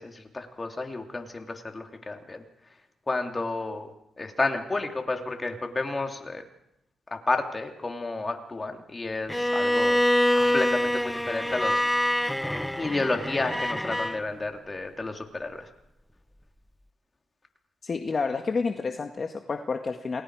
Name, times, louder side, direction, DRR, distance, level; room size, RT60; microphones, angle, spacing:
voice 1, 0.0-2.4 3.1-3.9 4.2-6.4 7.1-12.1 12.7-15.7, left 3 dB, 30° left, 4 dB, 3.3 m, -31 dB
Bowed string instrument, 9.3-14.2, left 1 dB, 5° left, 0.9 m, -25 dB
voice 2, 17.8-20.2, left 4 dB, 45° left, 4 dB, 1.8 m, -29 dB
29.0 x 20.5 x 5.0 m, 0.83 s
cardioid pair, 80°, 0 cm